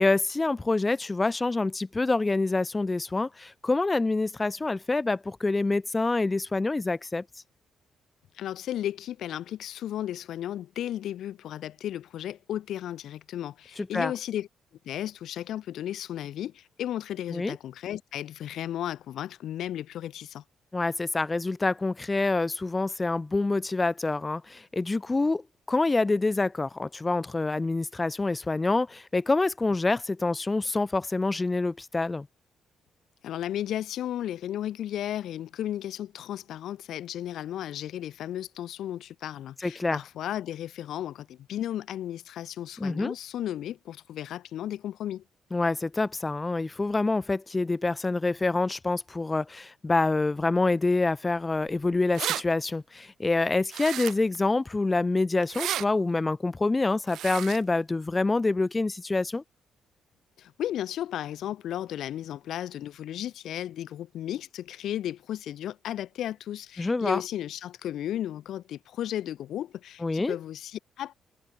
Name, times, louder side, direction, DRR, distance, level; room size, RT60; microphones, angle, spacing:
voice 1, 0.0-7.2 13.8-14.1 17.3-17.6 20.7-32.3 39.6-40.0 42.8-43.1 45.5-59.4 66.8-67.2 70.0-70.4, left 3 dB, 20° left, 3.8 m, -26 dB
voice 2, 8.3-14.5 14.8-20.4 33.2-45.2 60.4-71.1, left 11 dB, 75° left, 3.6 m, -34 dB
sound 1, 51.7-51.8 51.9-52.4 53.7-54.4 55.4-55.8 57.1-57.6, right 12 dB, 75° right, 5.2 m, -32 dB
cardioid pair, 90°, 0 cm